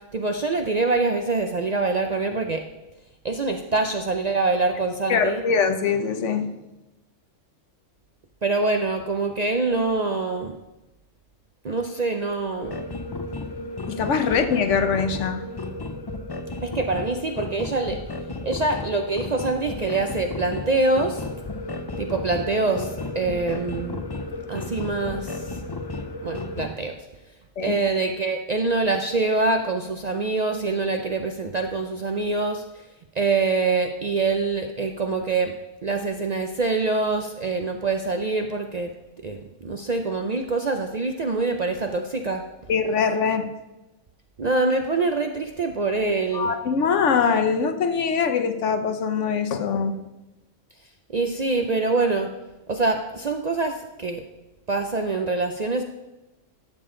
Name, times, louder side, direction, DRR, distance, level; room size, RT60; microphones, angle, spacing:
voice 1, 0.1-2.6 3.2-5.4 8.4-10.5 11.6-12.8 16.6-18.0 18.4-21.2 22.0-24.0 24.5-25.4 26.2-26.9 27.6-32.6 33.2-35.5 35.8-38.9 39.2-42.4 44.4-46.5 51.1-52.3 52.7-54.2 54.7-55.8, right 3 dB, 50° right, 5 dB, 0.5 m, -25 dB
voice 2, 5.1-6.5 13.9-15.4 27.6-27.7 42.7-43.5 46.3-50.0, left 6 dB, 70° left, 8 dB, 1.1 m, -23 dB
sound 1, 12.6-26.7, left 2 dB, 40° left, 0.3 m, -33 dB
12.5 x 6.9 x 3.8 m, 1.0 s
omnidirectional pair, 1.3 m